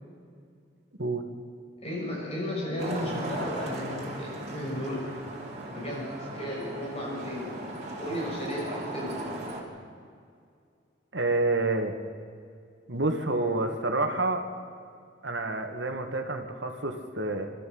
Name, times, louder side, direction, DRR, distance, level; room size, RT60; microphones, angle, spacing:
voice 1, 1.8-5.1 5.7-7.5 8.0-9.3, left 1 dB, 35° left, -3 dB, 6.3 m, -34 dB
Traffic noise roadway noise, 2.8-9.6, right 1 dB, 40° right, 3.6 m, -37 dB
voice 2, 11.1-11.9 12.9-14.4 15.2-17.5, right 2 dB, 70° right, 5 dB, 2.1 m, -28 dB
27.5 x 13.5 x 7.9 m, 2.3 s
head